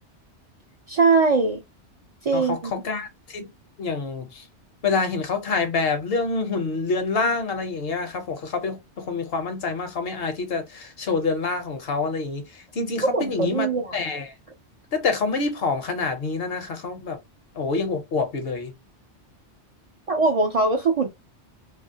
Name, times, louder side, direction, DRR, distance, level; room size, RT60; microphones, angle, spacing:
voice 1, 0.9-1.6 2.2-2.7 13.0-13.9 20.1-21.1, right 4 dB, 50° right, 0.4 m, -21 dB
voice 2, 2.3-3.5 3.8-4.4 4.8-14.3 14.9-17.2 17.6-18.7, left 4 dB, 65° left, 0.9 m, -27 dB
2.7 x 2.5 x 2.7 m
omnidirectional pair, 1.2 m